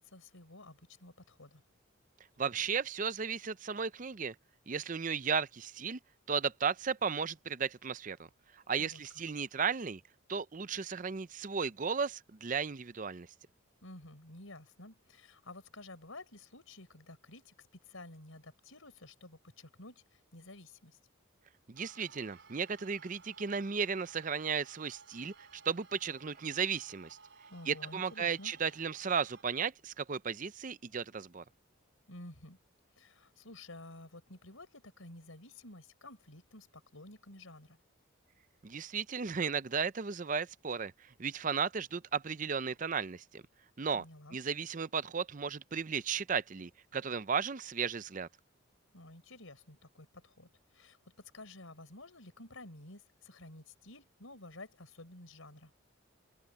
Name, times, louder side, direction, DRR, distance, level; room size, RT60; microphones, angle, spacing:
voice 1, 0.0-1.6 8.8-9.0 13.8-21.0 27.5-28.5 32.1-32.6 33.0-37.8 43.9-44.4 48.9-55.7, left 2 dB, 80° left, 4.4 m, -52 dB
voice 2, 2.4-4.3 4.7-6.0 6.3-8.2 8.7-10.0 10.3-13.3 21.7-25.3 25.7-27.2 27.7-31.4 38.6-40.9 41.2-43.4 43.8-44.0 44.3-48.3, right 6 dB, 40° right, 0.5 m, -35 dB
sound 1, 21.8-29.4, right 4 dB, 55° right, 6.5 m, -58 dB
head